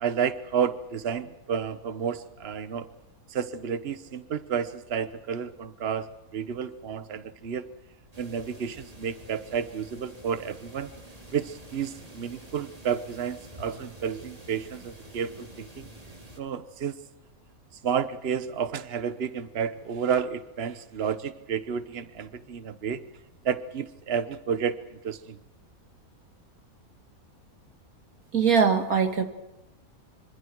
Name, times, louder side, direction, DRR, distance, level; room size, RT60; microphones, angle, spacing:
voice 1, 0.0-2.9 3.3-6.1 6.3-7.6 8.2-10.9 11.3-15.9 16.4-16.9 17.8-23.0 23.4-24.8 25.0-25.4, right 7 dB, 45° right, 12 dB, 1.2 m, -31 dB
sound 1, 8.1-16.4, right 1 dB, 25° right, 3.3 m, -48 dB
voice 2, 28.3-29.2, right 6 dB, 70° right, 6 dB, 2.4 m, -21 dB
26.0 x 25.5 x 4.7 m, 1.0 s
omnidirectional pair, 1.6 m